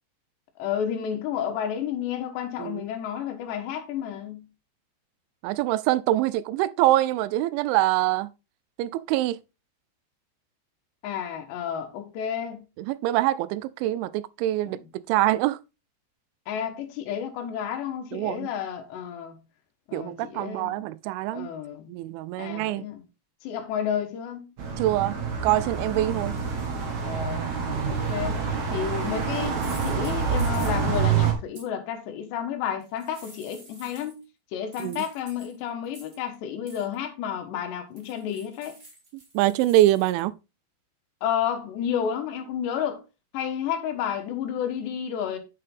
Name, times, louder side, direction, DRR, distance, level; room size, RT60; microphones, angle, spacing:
voice 1, 0.6-4.4 11.0-12.6 14.7-14.9 16.5-19.4 19.9-20.8 21.3-21.9 22.4-23.0 23.4-24.4 27.0-27.6 27.9-28.4 28.7-34.2 34.5-38.8 41.2-43.0 43.3-45.4, left 9 dB, 75° left, 3.2 m, -31 dB
voice 2, 5.4-8.3 8.8-9.4 12.9-15.6 18.1-18.5 19.9-21.5 21.9-22.8 24.8-25.2 25.4-26.4 34.8-35.0 39.3-40.3, right 15 dB, 90° right, 3.0 m, -24 dB
sound 1, 24.6-31.3, right 6 dB, 50° right, 2.7 m, -27 dB
sound 2, 28.3-28.5 29.5-31.0 31.5-31.6 32.8-34.2 34.7-36.3 36.7-36.9 38.0-40.2, right 2 dB, 25° right, 1.5 m, -49 dB
8.2 x 6.5 x 3.7 m
omnidirectional pair, 5.3 m